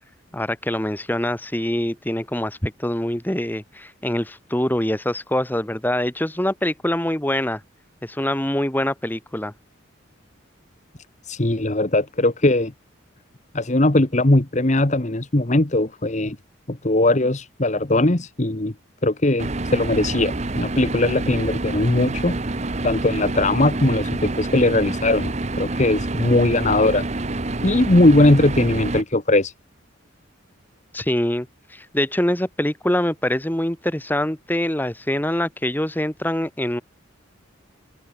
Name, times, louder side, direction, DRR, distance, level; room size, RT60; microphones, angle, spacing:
voice 1, 0.3-7.6 8.0-9.5 30.9-36.8, left 1 dB, 10° left, 1.5 m, -24 dB
voice 2, 11.3-12.7 13.5-16.4 16.7-18.7 19.0-22.4 22.8-27.0 27.6-29.5, left 2 dB, 35° left, 1.3 m, -19 dB
sound 1, 19.4-29.0, right 2 dB, 35° right, 1.0 m, -27 dB
open air
head